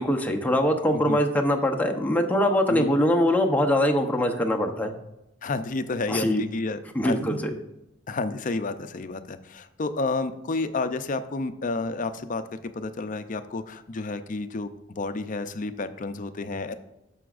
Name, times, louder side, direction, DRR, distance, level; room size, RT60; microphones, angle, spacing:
voice 1, 0.0-4.9 6.1-6.4 6.9-7.5, left 1 dB, 10° left, 2 dB, 0.8 m, -23 dB
voice 2, 5.4-7.4 8.1-16.7, left 3 dB, 45° left, 10 dB, 0.5 m, -30 dB
11.0 x 7.0 x 2.5 m, 0.92 s
head